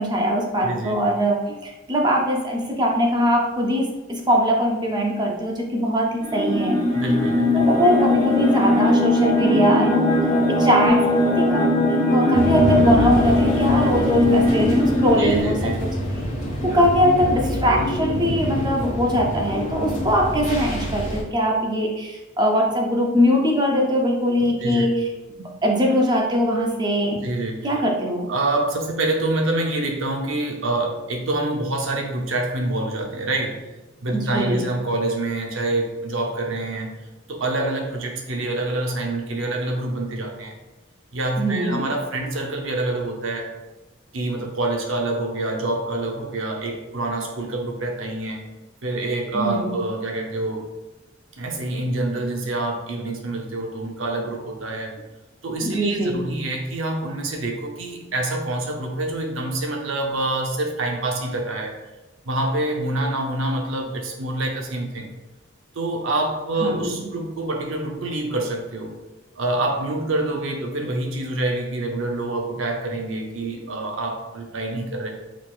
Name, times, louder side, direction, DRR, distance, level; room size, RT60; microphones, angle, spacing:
voice 1, 0.0-6.8 7.5-10.1 10.5-11.0 11.4-15.7 16.6-24.9 25.4-27.3 27.6-28.3 34.1-34.7 41.4-41.8 49.3-49.8 55.6-56.3 66.6-67.1, equal, 20° right, 0 dB, 0.6 m, -21 dB
voice 2, 0.6-1.0 6.9-7.7 15.2-15.9 24.6-24.9 27.2-27.7 28.3-33.6 34.0-36.9 37.3-40.6 41.1-43.5 44.1-48.4 48.8-50.7 51.4-54.9 55.4-61.7 62.2-65.1 65.7-69.0 69.4-75.1, right 2 dB, 80° right, 2 dB, 0.7 m, -26 dB
sound 1, 6.2-15.4, left 1 dB, 20° left, 1.1 m, -20 dB
sound 2, 12.3-21.2, equal, 40° left, 1.4 m, -26 dB
4.6 x 3.9 x 2.4 m, 1.1 s
head